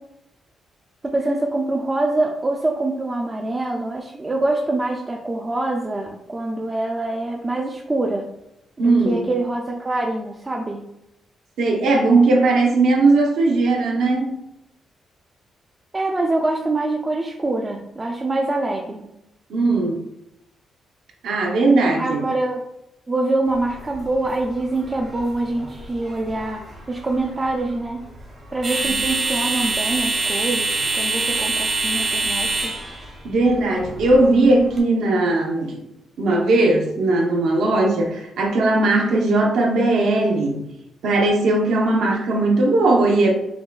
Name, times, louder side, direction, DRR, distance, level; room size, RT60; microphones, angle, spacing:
voice 1, 1.0-8.3 8.8-10.8 15.9-19.1 22.0-22.6 23.1-28.0 28.5-32.7, right 2 dB, 20° right, 0 dB, 0.3 m, -25 dB
voice 2, 8.8-9.3 11.6-14.3 19.5-20.0 21.2-22.2 28.8-28.9 33.2-35.8 36.2-40.6 41.0-43.3, right 2 dB, 75° right, 0 dB, 0.8 m, -18 dB
sound 1, 23.5-34.8, right 3 dB, 40° right, 0.9 m, -26 dB
5.9 x 2.2 x 2.3 m, 0.85 s
cardioid pair, 155°, 0 cm